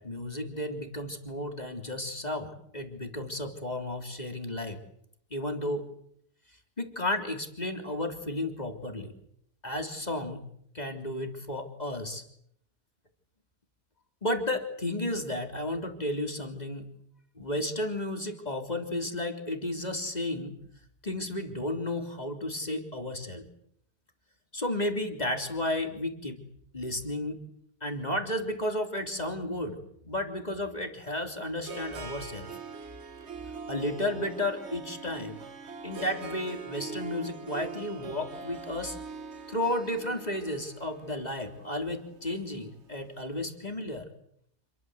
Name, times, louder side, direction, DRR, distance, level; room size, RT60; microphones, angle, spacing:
voice 1, 0.0-4.8 5.3-5.8 6.8-9.1 9.6-10.4 10.7-12.2 14.2-16.9 17.4-20.6 21.0-23.4 24.5-26.4 26.7-27.4 27.8-29.8 30.0-32.5 33.7-35.4 35.8-39.0 39.5-44.1, left 1 dB, 25° left, 5 dB, 3.3 m, -33 dB
Harp, 31.0-43.1, right 5 dB, 45° right, 1.7 m, -43 dB
28.0 x 22.0 x 7.9 m, 0.71 s
omnidirectional pair, 1.6 m